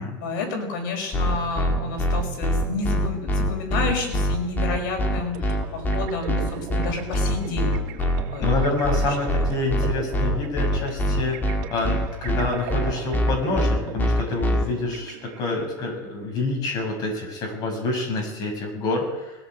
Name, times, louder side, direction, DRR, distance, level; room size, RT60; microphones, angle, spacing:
voice 1, 0.2-7.8 8.0-8.5 9.1-9.2, left 3 dB, 80° left, 3 dB, 5.7 m, -30 dB
sound 1, 1.1-14.6, equal, 15° left, 2.3 m, -23 dB
sound 2, 5.3-15.8, right 12 dB, 60° right, 2.8 m, -39 dB
voice 2, 8.4-11.4 11.7-19.3, left 2 dB, 40° left, 1 dB, 6.7 m, -27 dB
21.5 x 16.5 x 8.1 m, 1.0 s
cardioid pair, 165°, 11 cm